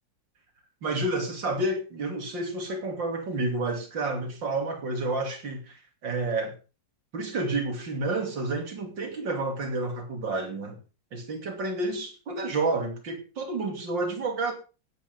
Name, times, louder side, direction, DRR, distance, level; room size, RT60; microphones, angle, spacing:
voice 1, 0.8-6.5 7.1-10.8 11.1-14.5, right 2 dB, 75° right, 3.5 m, -30 dB
16.5 x 8.8 x 5.5 m
omnidirectional pair, 2.0 m